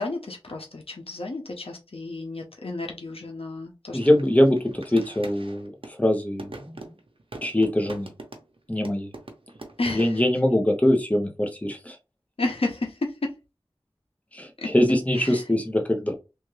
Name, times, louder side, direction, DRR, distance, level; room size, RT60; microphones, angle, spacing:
voice 1, 0.0-4.3 9.8-10.2 12.4-13.4 14.6-14.7 15.2-15.4, left 2 dB, 85° left, 0.8 m, -32 dB
voice 2, 3.9-6.9 7.4-8.1 8.7-9.1 9.9-12.0 14.3-16.1, left 1 dB, 15° left, 1.0 m, -23 dB
sound 1, 4.0-6.0 6.4-8.6 8.8-10.2, right 2 dB, 70° right, 0.8 m, -42 dB
3.4 x 2.6 x 3.2 m
wide cardioid pair, 50°, 10 cm